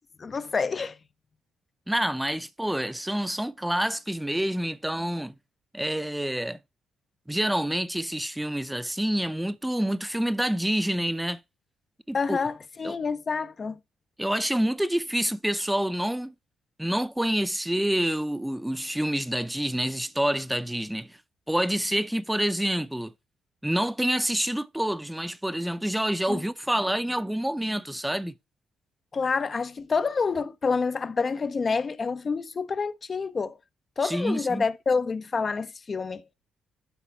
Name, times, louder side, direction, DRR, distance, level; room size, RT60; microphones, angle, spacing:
voice 1, 0.2-1.0 12.1-13.8 26.3-26.4 29.1-33.6 34.0-36.2, left 4 dB, 45° left, 0.6 m, -28 dB
voice 2, 1.9-5.3 5.7-6.6 7.3-11.4 12.1-12.4 12.8-13.0 14.2-16.3 16.8-21.2 21.5-23.1 23.6-28.3 34.0-34.6, right 1 dB, 5° right, 0.6 m, -27 dB
11.5 x 4.1 x 4.4 m
hypercardioid pair, 50°, 0 cm